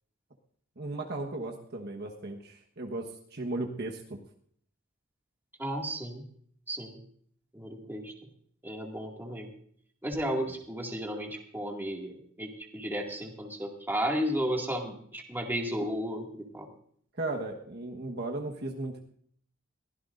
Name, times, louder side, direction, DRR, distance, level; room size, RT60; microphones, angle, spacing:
voice 1, 0.8-4.2 17.2-19.0, right 2 dB, 50° right, 2 dB, 1.3 m, -36 dB
voice 2, 5.6-6.2 6.7-7.0 7.5-8.1 8.6-9.5 10.0-16.7, equal, 10° right, 0 dB, 2.2 m, -33 dB
22.5 x 16.0 x 2.6 m, 0.62 s
head